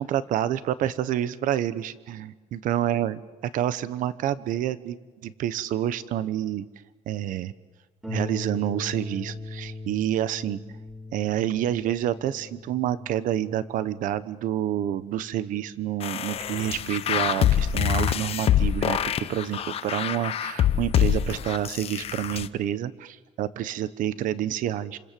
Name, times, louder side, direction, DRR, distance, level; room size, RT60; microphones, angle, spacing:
voice 1, 0.0-3.2 3.5-6.7 7.1-7.5 8.1-10.6 11.1-25.0, right 11 dB, 75° right, 14 dB, 1.1 m, -28 dB
Harp, 8.0-17.2 18.0-18.1 18.6-18.7, left 2 dB, 5° right, 3.3 m, -40 dB
sound 1, 16.0-22.5, left 10 dB, 45° left, 0.9 m, -25 dB
29.0 x 27.0 x 7.7 m, 1.2 s
cardioid pair, 175°, 14 cm